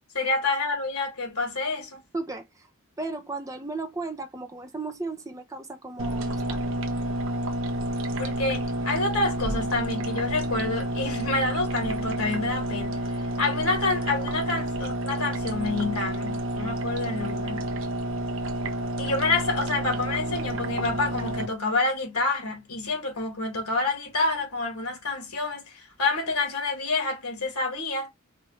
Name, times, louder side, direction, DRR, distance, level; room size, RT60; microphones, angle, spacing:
voice 1, 0.1-2.0 8.2-13.0 13.4-17.7 19.0-28.1, left 3 dB, 90° left, 1.8 m, -28 dB
voice 2, 2.1-2.4 3.0-6.8, right 3 dB, 15° right, 0.6 m, -35 dB
sound 1, 6.0-21.5, right 1 dB, 65° right, 0.8 m, -30 dB
4.8 x 2.5 x 3.1 m
head